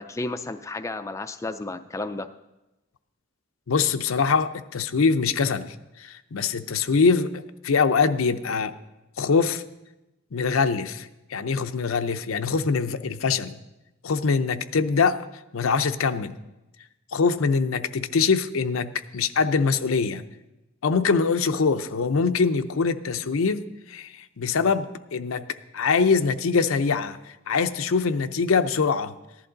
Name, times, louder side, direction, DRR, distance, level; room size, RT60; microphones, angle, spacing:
voice 1, 0.0-2.3, left 2 dB, 15° left, 8 dB, 0.4 m, -32 dB
voice 2, 3.7-8.7 9.2-9.6 10.3-13.6 14.0-15.2 15.5-16.4 17.1-20.2 20.8-25.4 25.7-29.1, left 5 dB, 85° left, 10 dB, 0.6 m, -23 dB
14.5 x 11.0 x 3.9 m, 0.98 s
head